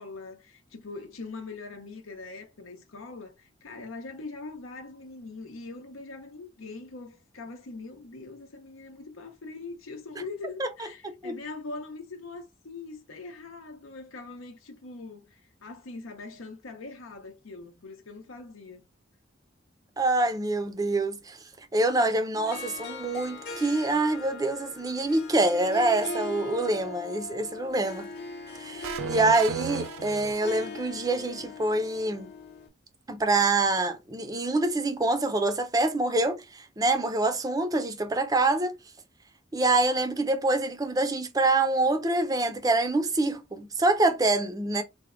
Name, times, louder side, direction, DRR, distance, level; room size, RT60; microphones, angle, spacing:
voice 1, 0.0-18.8, left 3 dB, 85° left, 0.7 m, -42 dB
voice 2, 11.0-11.4 20.0-21.4 21.7-28.1 28.5-32.3 33.1-38.7 39.5-44.8, right 2 dB, 20° right, 0.5 m, -26 dB
Harp, 22.4-32.7, left 3 dB, 55° left, 0.8 m, -40 dB
sound 1, 28.8-30.8, right 7 dB, 85° right, 0.3 m, -35 dB
3.4 x 2.1 x 3.5 m
head